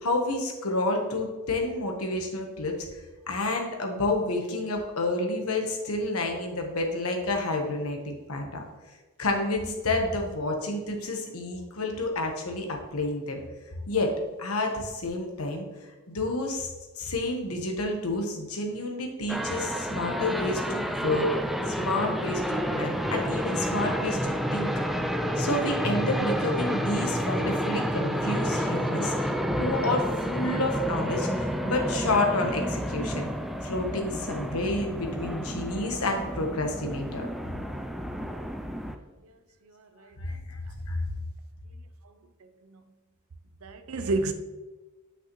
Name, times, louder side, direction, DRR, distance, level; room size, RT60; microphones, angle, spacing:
voice 1, 0.0-2.7 3.3-8.6 9.2-13.4 13.9-14.1 14.4-15.7 16.1-16.7 17.0-21.3 21.7-24.7 25.4-33.3 33.6-37.3 40.2-41.0, left 2 dB, 85° left, 1.2 m, -29 dB
sound 1, 19.3-39.0, equal, ahead, 0.3 m, -30 dB
voice 2, 39.7-40.2 42.6-42.8 43.6-44.3, right 2 dB, 75° right, 0.6 m, -30 dB
8.3 x 5.9 x 3.1 m
head